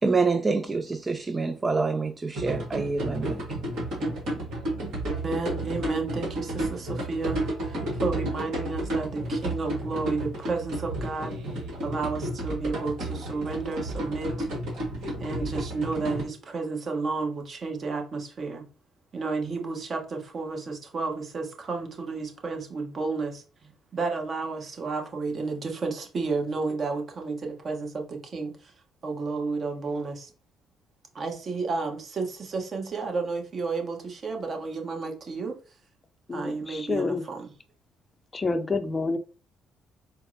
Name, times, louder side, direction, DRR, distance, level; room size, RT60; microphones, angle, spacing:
voice 1, 0.0-3.4, right 4 dB, 30° right, 0.3 m, -26 dB
sound 1, 2.3-16.2, right 1 dB, 65° right, 1.4 m, -32 dB
voice 2, 5.2-11.4 11.8-14.5 15.2-18.7 19.1-28.7 29.0-30.3 31.1-35.8 36.3-37.5, right 4 dB, 50° right, 0.9 m, -32 dB
voice 3, 36.3-37.2 38.3-39.2, left 3 dB, 30° left, 0.5 m, -28 dB
4.1 x 2.0 x 2.6 m
hypercardioid pair, 50°, 0 cm